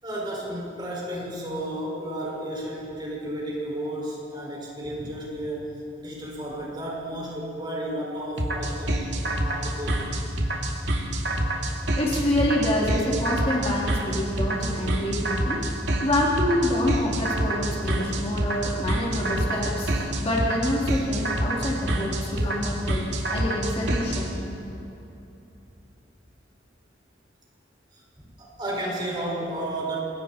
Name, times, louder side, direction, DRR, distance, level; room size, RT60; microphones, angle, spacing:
voice 1, 0.0-10.2 27.9-28.0 28.4-30.0, right 1 dB, 25° right, -4 dB, 6.0 m, -33 dB
sound 1, 8.4-24.2, right 1 dB, 70° right, 2.5 m, -26 dB
voice 2, 12.0-15.6 16.0-23.0 23.3-24.5, left 1 dB, 30° left, -4 dB, 3.2 m, -27 dB
27.0 x 22.0 x 4.5 m, 2.9 s
head